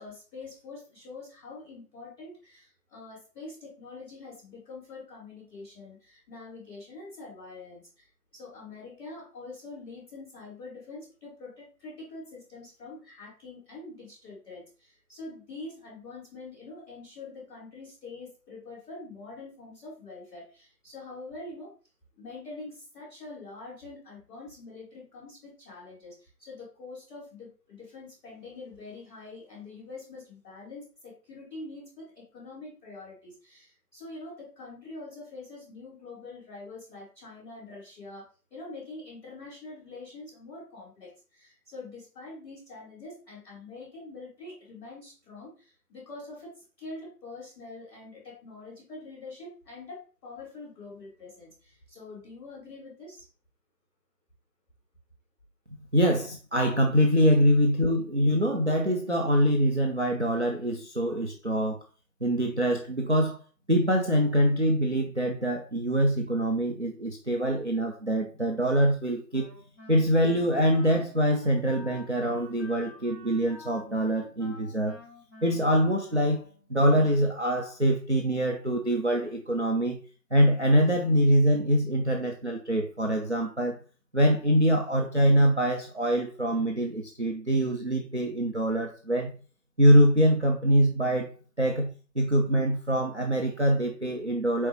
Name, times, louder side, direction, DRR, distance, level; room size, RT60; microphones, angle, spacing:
voice 1, 0.0-21.7 22.1-46.5 46.8-53.3, left 3 dB, 5° left, 2.3 m, -45 dB
voice 2, 55.9-61.8 62.2-63.4 63.7-69.5 69.9-75.0 75.4-80.0 80.3-83.8 84.1-89.3 89.8-91.3 91.6-94.7, equal, 45° right, 0.5 m, -24 dB
Wind instrument woodwind instrument, 69.3-76.7, left 2 dB, 40° left, 1.8 m, -49 dB
4.5 x 3.9 x 2.9 m
figure-of-eight pair, 160°, 49 cm